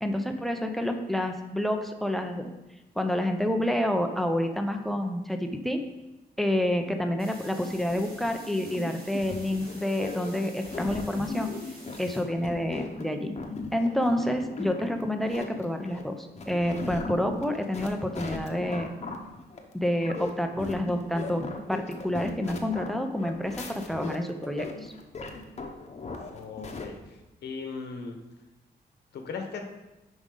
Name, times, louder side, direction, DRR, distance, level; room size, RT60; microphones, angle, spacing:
voice 1, 0.0-2.5 3.0-5.8 6.4-11.5 12.0-13.3 13.7-18.9 19.7-24.9, left 1 dB, ahead, 6 dB, 0.6 m, -28 dB
sound 1, 7.2-12.2, right 1 dB, 65° right, 2.7 m, -49 dB
sound 2, 7.7-26.9, left 3 dB, 40° left, 1.0 m, -39 dB
voice 2, 26.3-28.2 29.1-29.6, left 5 dB, 80° left, 3 dB, 1.0 m, -38 dB
9.5 x 5.3 x 3.8 m, 1.0 s
wide cardioid pair, 125°, 17 cm